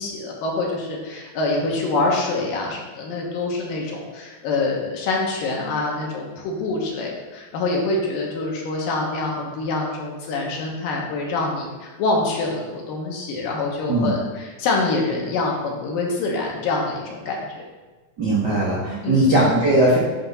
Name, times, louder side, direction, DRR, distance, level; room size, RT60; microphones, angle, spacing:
voice 1, 0.0-17.6 19.0-19.3, left 3 dB, 75° left, -1 dB, 2.9 m, -25 dB
voice 2, 18.2-20.0, right 1 dB, 70° right, -6 dB, 1.0 m, -18 dB
9.7 x 3.6 x 5.5 m, 1.3 s
omnidirectional pair, 4.1 m